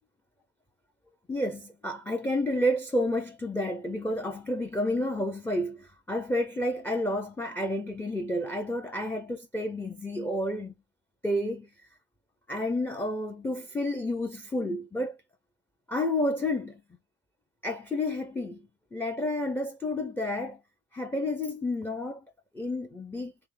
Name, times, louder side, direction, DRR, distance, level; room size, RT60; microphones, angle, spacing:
voice 1, 1.3-10.8 11.2-11.7 12.5-15.2 15.9-16.8 17.6-18.6 18.9-20.6 20.9-22.2 22.5-23.3, left 1 dB, 5° left, 0.4 m, -30 dB
3.5 x 3.2 x 3.2 m
cardioid pair, 115°, 50 cm